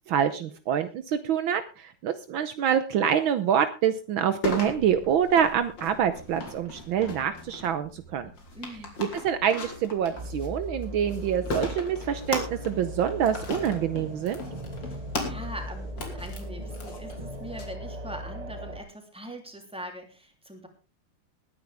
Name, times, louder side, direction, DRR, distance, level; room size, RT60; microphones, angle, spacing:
voice 1, 0.1-8.3 9.0-14.4, right 8 dB, 70° right, 11 dB, 1.6 m, -26 dB
sound 1, 4.4-17.6, left 2 dB, 55° left, 3.5 m, -38 dB
voice 2, 8.5-8.9 14.8-20.7, equal, ahead, 3 dB, 3.0 m, -42 dB
sound 2, 10.2-18.8, equal, 30° right, 0.7 m, -38 dB
sound 3, 11.3-15.9, left 5 dB, 85° left, 4.0 m, -45 dB
20.0 x 10.0 x 3.5 m, 0.31 s
omnidirectional pair, 2.4 m